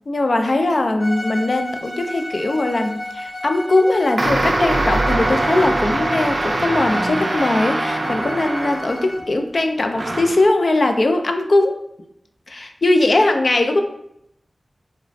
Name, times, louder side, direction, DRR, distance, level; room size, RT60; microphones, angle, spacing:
voice 1, 0.1-11.8 12.5-13.8, left 2 dB, 65° left, 5 dB, 0.3 m, -20 dB
Bowed string instrument, 1.0-9.3, left 1 dB, 85° left, 1.3 m, -33 dB
sound 1, 4.2-9.2 9.9-10.5, right 2 dB, 60° right, 0.3 m, -22 dB
3.1 x 2.0 x 2.6 m, 0.75 s
cardioid pair, 50°, 0 cm